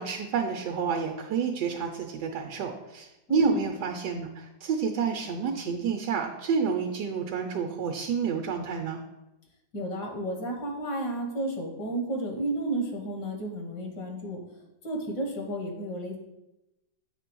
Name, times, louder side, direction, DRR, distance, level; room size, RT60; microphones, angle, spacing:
voice 1, 0.0-9.0, right 6 dB, 75° right, 3 dB, 1.2 m, -29 dB
voice 2, 3.3-3.6 9.7-14.4 14.8-16.2, right 1 dB, 75° left, 2 dB, 1.8 m, -32 dB
8.3 x 3.2 x 6.1 m, 0.96 s
omnidirectional pair, 1.8 m